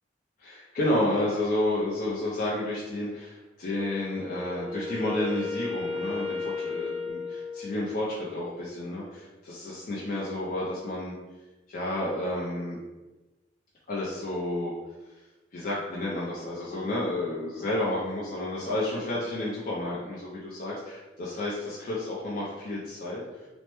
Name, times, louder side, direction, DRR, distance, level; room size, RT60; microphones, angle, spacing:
voice 1, 0.4-11.2 11.7-12.8 13.9-14.7 15.5-23.2, left 1 dB, 50° left, -6 dB, 0.5 m, -31 dB
Wind instrument woodwind instrument, 3.7-8.1, left 4 dB, 10° right, 1.2 m, -35 dB
3.1 x 2.1 x 3.0 m, 1.1 s
head